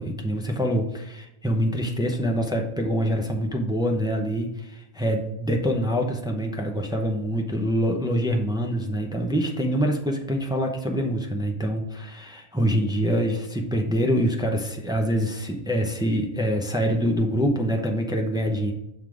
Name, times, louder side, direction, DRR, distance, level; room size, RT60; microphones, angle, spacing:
voice 1, 0.0-18.7, equal, 5° right, 2 dB, 0.5 m, -25 dB
6.4 x 3.7 x 4.7 m, 0.87 s
omnidirectional pair, 1.1 m